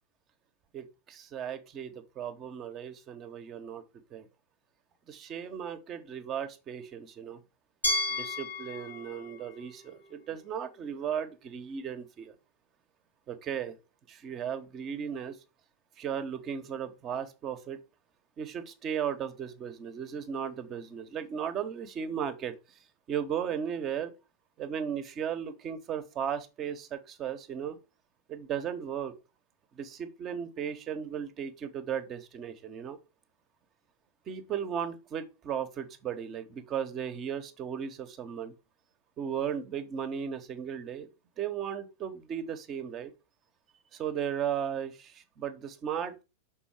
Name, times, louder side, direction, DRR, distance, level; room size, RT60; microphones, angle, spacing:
voice 1, 0.7-3.8 4.1-4.3 5.1-7.4 8.1-12.3 13.3-13.8 14.1-15.4 16.0-17.8 18.4-22.5 23.1-24.1 24.6-27.8 28.3-29.1 29.7-33.0 34.3-38.5 39.2-41.1 41.4-43.1 43.9-46.2, right 8 dB, 30° right, 1.2 m, -36 dB
Glass, 7.8-10.7, left 2 dB, 75° left, 1.5 m, -34 dB
6.3 x 4.3 x 6.0 m
figure-of-eight pair, 90°, 0 cm